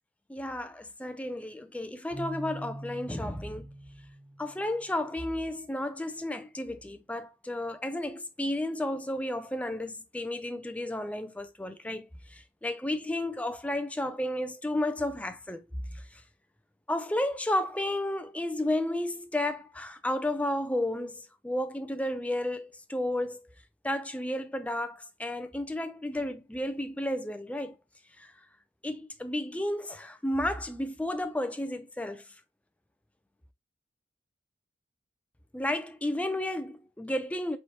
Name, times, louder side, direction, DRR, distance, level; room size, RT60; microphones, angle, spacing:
voice 1, 0.3-3.7 4.4-12.1 12.3-15.6 15.9-16.0 16.9-23.5 23.8-27.8 28.2-28.3 28.8-32.2 35.5-37.6, left 1 dB, 5° left, 0.4 m, -32 dB
Keyboard (musical), 2.1-5.0, right 1 dB, 40° right, 2.0 m, -43 dB
4.1 x 3.4 x 2.9 m
head